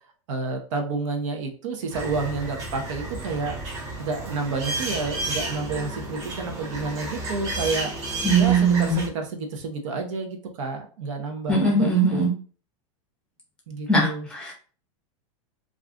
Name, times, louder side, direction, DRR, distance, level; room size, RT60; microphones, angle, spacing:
voice 1, 0.3-3.6 4.0-7.9 8.3-12.3 13.7-14.3, right 4 dB, 65° right, 4 dB, 0.7 m, -30 dB
sound 1, 1.9-9.1, right 2 dB, 35° right, 0.9 m, -32 dB
voice 2, 8.2-9.0 11.5-12.3 13.9-14.5, right 3 dB, 5° left, -2 dB, 0.7 m, -20 dB
2.5 x 2.3 x 3.5 m, 0.41 s
supercardioid pair, 165°, 18 cm